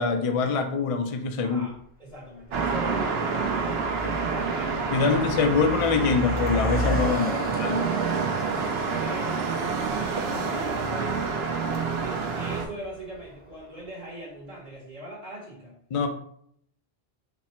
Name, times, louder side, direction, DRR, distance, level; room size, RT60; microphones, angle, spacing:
voice 1, 0.0-1.6 4.9-7.8 15.9-16.1, left 5 dB, 55° left, 5 dB, 0.4 m, -24 dB
voice 2, 1.4-5.3 5.6-6.1 7.3-11.2 11.9-15.8 16.0-16.1, right 2 dB, 45° right, -4 dB, 1.1 m, -41 dB
Car passing by, 1.7-1.8 2.6-2.9 3.1-13.5, equal, 10° right, 0.6 m, -35 dB
sound 1, 2.5-12.7, right 5 dB, 75° right, 0.8 m, -28 dB
4.2 x 2.1 x 4.2 m, 0.67 s
omnidirectional pair, 1.0 m